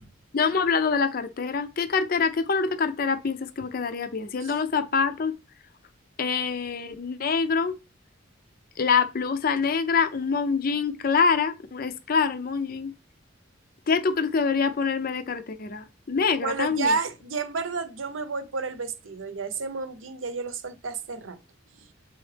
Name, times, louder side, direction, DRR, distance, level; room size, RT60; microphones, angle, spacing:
voice 1, 0.3-5.3 6.2-7.8 8.8-12.9 13.9-16.9, left 5 dB, 50° left, 0.5 m, -25 dB
voice 2, 16.4-21.4 21.7-21.9, right 4 dB, 80° right, 0.8 m, -31 dB
7.0 x 4.1 x 3.3 m
head